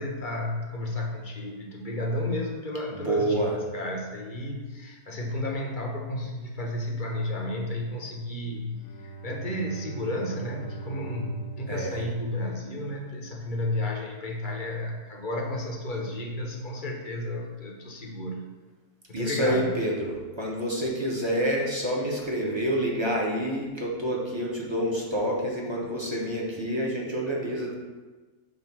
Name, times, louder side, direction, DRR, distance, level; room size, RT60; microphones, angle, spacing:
voice 1, 0.0-8.7 9.0-18.4 19.1-19.7, left 1 dB, 40° left, 0 dB, 0.8 m, -32 dB
voice 2, 2.9-3.5 11.7-12.0 19.1-27.7, right 1 dB, 20° right, -3 dB, 0.8 m, -28 dB
Bowed string instrument, 8.7-13.2, right 4 dB, 70° left, 1.1 m, -42 dB
7.8 x 2.6 x 5.9 m, 1.3 s
omnidirectional pair, 1.7 m